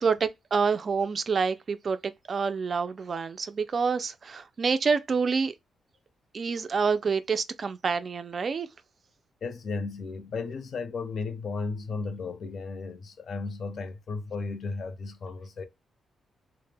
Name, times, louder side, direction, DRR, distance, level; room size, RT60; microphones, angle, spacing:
voice 1, 0.0-5.5 6.3-8.7, right 5 dB, 45° right, 0.3 m, -27 dB
voice 2, 9.4-15.6, left 4 dB, 55° left, 0.5 m, -34 dB
2.1 x 2.0 x 3.2 m
cardioid pair, 120°, 0 cm